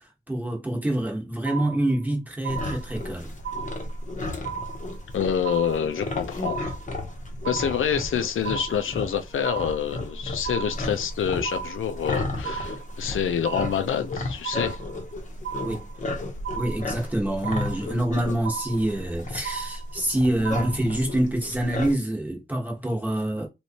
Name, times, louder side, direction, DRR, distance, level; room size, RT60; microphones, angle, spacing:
voice 1, 0.0-3.3 15.6-15.9 16.5-23.5, right 1 dB, 10° right, 1.0 m, -26 dB
sound 1, 1.4-2.1 2.4-3.1 3.4-4.1 4.4-5.1 5.4-6.1 6.4-7.1 7.4-8.1 8.4-9.1 9.4-10.1 10.4-11.1 11.4-12.1 12.4-13.1 13.4-14.1 14.4-15.1 15.4-16.1 16.4-17.1 17.4-18.1 18.4-19.1 19.4-20.1 20.4-21.1, right 7 dB, 60° right, 0.4 m, -35 dB
sound 2, 2.5-21.9, left 2 dB, 40° left, 0.7 m, -34 dB
voice 2, 5.1-6.6 7.4-14.8, left 8 dB, 90° left, 0.6 m, -27 dB
3.1 x 3.1 x 2.8 m
wide cardioid pair, 165°, 20 cm